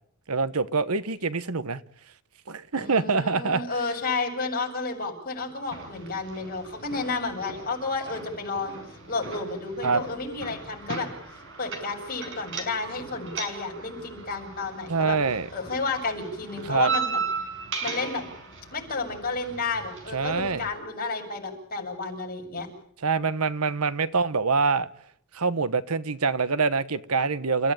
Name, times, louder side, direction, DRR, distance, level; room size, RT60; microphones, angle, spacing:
voice 1, 0.3-1.8 2.5-3.6 9.8-10.0 14.9-15.5 16.6-16.9 20.1-20.7 23.0-24.9 25.3-27.7, right 4 dB, 80° right, 1.2 m, -25 dB
voice 2, 2.8-8.8 9.1-11.1 11.6-15.2 15.5-17.2 17.8-18.2 18.7-22.7, left 3 dB, 40° left, 7.5 m, -31 dB
sound 1, 5.7-20.7, right 4 dB, 60° right, 6.0 m, -37 dB
30.0 x 16.0 x 8.9 m
head